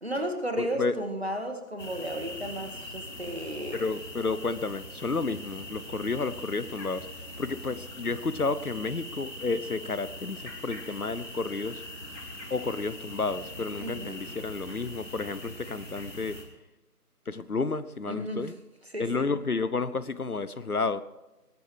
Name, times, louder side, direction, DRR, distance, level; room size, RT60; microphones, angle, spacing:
voice 1, 0.0-3.8 5.3-5.5 13.8-14.2 18.1-18.5 18.9-19.3, right 1 dB, 40° right, 6 dB, 1.7 m, -34 dB
voice 2, 0.6-1.0 3.7-7.1 7.4-11.8 12.5-16.4 17.3-18.5 19.0-21.0, left 4 dB, 65° left, 15 dB, 0.8 m, -31 dB
sound 1, 1.8-16.4, left 1 dB, 85° left, 4.1 m, -42 dB
20.0 x 12.5 x 3.3 m, 1.1 s
figure-of-eight pair, 175°, 47 cm